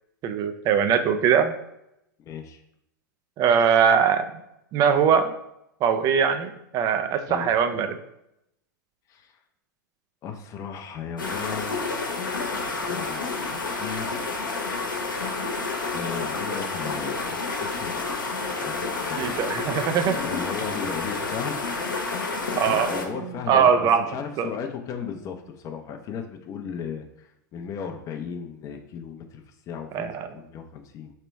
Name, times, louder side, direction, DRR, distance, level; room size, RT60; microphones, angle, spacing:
voice 1, 0.2-1.5 3.4-4.2 4.7-5.3 5.8-8.0 19.2-20.2 22.5-24.0 24.4-24.5 29.9-30.3, right 7 dB, 35° right, 9 dB, 0.5 m, -21 dB
voice 2, 2.2-2.6 7.3-7.5 9.1-9.4 10.2-11.8 12.7-14.2 15.9-18.0 18.5-19.4 20.1-21.6 22.6-31.1, left 6 dB, 30° left, 4 dB, 0.5 m, -36 dB
sound 1, 11.2-23.1, left 3 dB, 90° left, 0.9 m, -29 dB
3.2 x 2.9 x 4.5 m, 0.81 s
hypercardioid pair, 100°, 11 cm